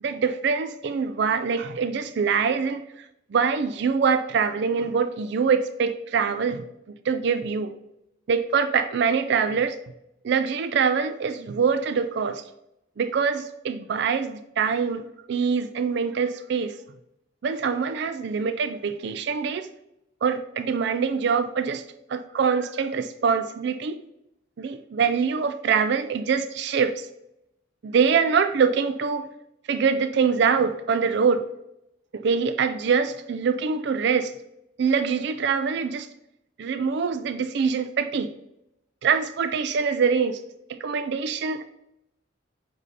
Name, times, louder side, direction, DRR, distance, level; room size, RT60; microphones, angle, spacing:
voice 1, 0.0-2.8 3.3-6.6 7.1-7.7 8.3-9.8 10.2-12.4 13.0-16.8 17.4-19.7 20.2-21.8 22.1-24.0 24.6-27.1 27.8-29.3 29.7-31.5 32.1-34.3 34.8-36.1 36.6-38.3 39.0-40.4 40.8-41.6, right 6 dB, 55° right, 10 dB, 0.3 m, -24 dB
8.1 x 2.7 x 5.4 m, 0.84 s
head